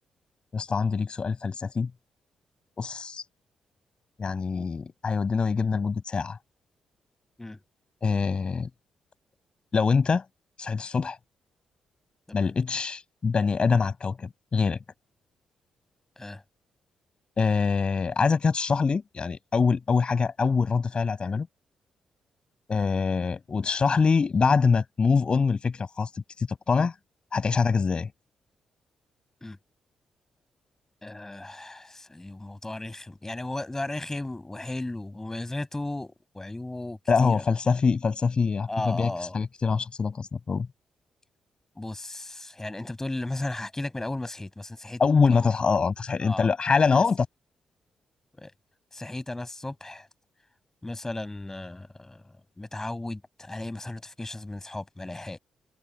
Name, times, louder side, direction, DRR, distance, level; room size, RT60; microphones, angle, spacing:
voice 1, 0.5-1.9 2.8-3.2 4.2-6.4 8.0-8.7 9.7-10.2 10.6-11.2 12.3-14.8 17.4-21.5 22.7-26.1 26.5-26.9 27.3-28.1 37.1-40.7 45.0-47.3, left 5 dB, 45° left, 6.0 m, -24 dB
voice 2, 31.0-37.4 38.7-39.3 41.8-45.0 45.3-45.5 46.2-46.5 46.9-47.0 48.4-48.5 48.9-50.1 50.8-55.4, left 2 dB, 20° left, 6.8 m, -35 dB
hypercardioid pair, 40°, 2 cm